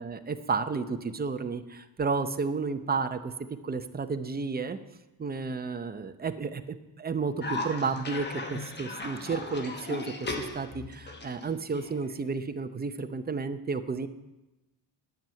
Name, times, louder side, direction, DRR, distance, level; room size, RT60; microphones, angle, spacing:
voice 1, 0.0-3.3 3.6-4.8 5.2-10.3 10.5-14.1, right 4 dB, 20° right, 8 dB, 0.7 m, -32 dB
Cough, 7.4-12.5, left 2 dB, 20° left, 1.1 m, -37 dB
10.5 x 7.2 x 9.2 m, 1.0 s
cardioid pair, 145°, 46 cm